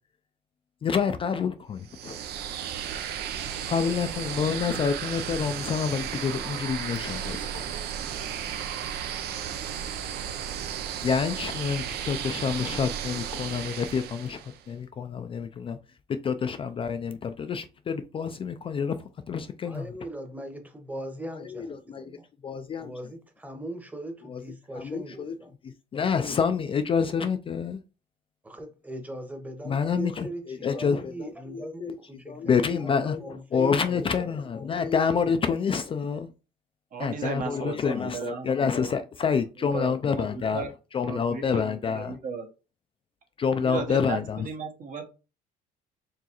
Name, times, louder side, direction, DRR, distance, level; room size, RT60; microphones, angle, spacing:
voice 1, 0.8-2.2 3.7-7.7 11.0-15.8 16.1-19.9 21.4-22.2 22.4-22.9 24.3-24.4 24.7-25.4 25.6-27.8 29.7-32.0 32.3-36.3 37.0-40.6 40.9-42.2 43.4-44.5, left 6 dB, 30° left, 0.4 m, -28 dB
sound 1, 1.8-14.6, right 9 dB, 70° right, 0.6 m, -34 dB
voice 2, 19.6-22.3 22.8-25.5 28.4-32.9 33.2-34.9, right 1 dB, 10° right, 1.0 m, -40 dB
voice 3, 36.9-38.9 39.6-40.7 41.0-42.4 43.6-45.1, right 5 dB, 55° right, 1.1 m, -35 dB
4.6 x 3.0 x 2.9 m
cardioid pair, 110°, 17 cm